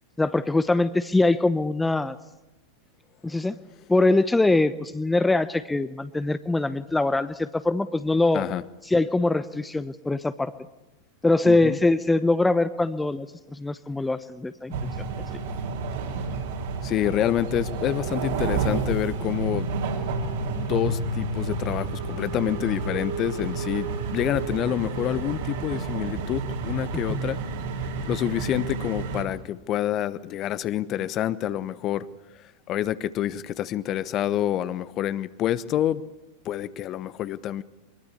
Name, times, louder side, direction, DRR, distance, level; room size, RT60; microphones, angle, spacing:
voice 1, 0.2-2.2 3.2-3.6 3.9-8.4 8.8-10.5 11.2-14.8 27.1-27.2, left 2 dB, 5° left, 13 dB, 0.8 m, -23 dB
voice 2, 11.4-11.8 16.8-19.7 20.5-27.4 28.1-32.1 32.7-36.0 36.4-37.6, left 12 dB, 35° left, 16 dB, 1.0 m, -27 dB
sound 1, 14.7-29.2, right 4 dB, 55° right, 4.5 m, -30 dB
23.5 x 22.5 x 8.4 m, 1.0 s
figure-of-eight pair, 90°, 0 cm